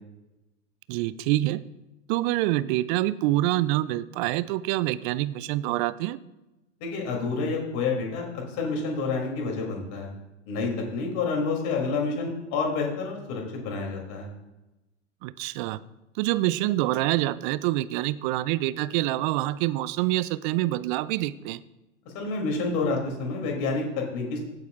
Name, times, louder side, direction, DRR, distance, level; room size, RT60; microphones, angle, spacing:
voice 1, 0.9-1.6 2.1-6.2 15.2-15.8 16.2-21.6, right 16 dB, 45° right, 18 dB, 0.5 m, -26 dB
voice 2, 6.8-10.1 10.5-14.3 22.1-24.4, left 4 dB, 45° left, 0 dB, 3.0 m, -29 dB
15.0 x 8.1 x 2.5 m, 0.99 s
hypercardioid pair, 95°, 37 cm